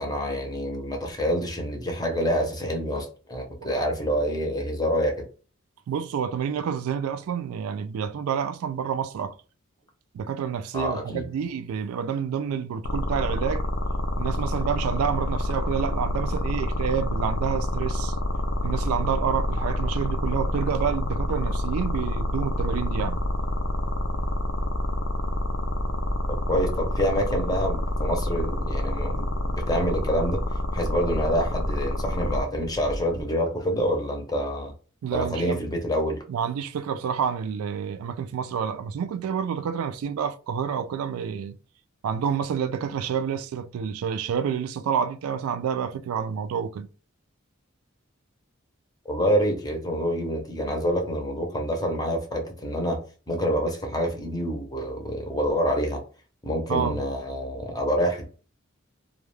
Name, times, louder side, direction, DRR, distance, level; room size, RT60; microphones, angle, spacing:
voice 1, 0.0-5.3 10.7-11.3 26.3-30.4 30.7-34.7 35.1-36.2 49.0-53.0 53.3-56.0 56.4-58.3, equal, 20° left, 0.6 m, -27 dB
voice 2, 5.9-9.3 10.1-13.6 14.2-18.2 18.6-23.2 35.0-35.6 36.3-41.6 42.0-46.9 56.7-57.0, right 7 dB, 90° right, 0.3 m, -28 dB
sound 1, 12.8-32.4, left 1 dB, 65° left, 0.5 m, -27 dB
sound 2, 18.1-33.2, equal, 40° right, 0.5 m, -38 dB
2.3 x 2.2 x 3.1 m
head